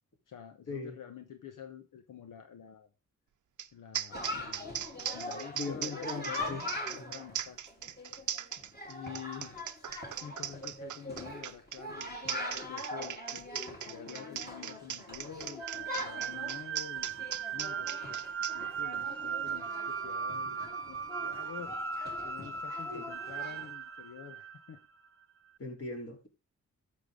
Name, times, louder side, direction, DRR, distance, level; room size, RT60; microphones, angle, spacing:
voice 1, 0.3-2.9 3.7-7.6 8.9-9.7 10.2-12.4 12.7-18.2 18.5-21.8 22.2-24.8, left 8 dB, 90° left, 1.2 m, -48 dB
sound 1, 3.6-3.7 3.9-18.5, right 10 dB, 70° right, 0.7 m, -39 dB
Chatter, 4.1-23.7, left 1 dB, 30° left, 3.9 m, -43 dB
voice 2, 5.5-6.6 7.0-7.1 22.9-23.1 25.6-26.3, left 3 dB, 50° left, 3.9 m, -39 dB
sound 2, 15.6-24.8, right 6 dB, 45° right, 0.9 m, -38 dB
13.5 x 6.9 x 3.9 m
cardioid pair, 70°, 31 cm